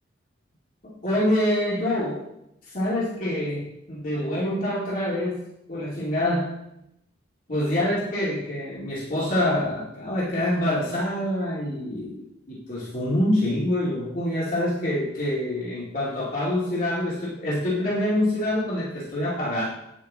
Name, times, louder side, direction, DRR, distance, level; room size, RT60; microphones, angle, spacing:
voice 1, 1.0-2.2 2.7-6.6 7.5-19.6, left 1 dB, 50° left, -8 dB, 2.6 m, -26 dB
9.0 x 8.4 x 3.8 m, 0.82 s
head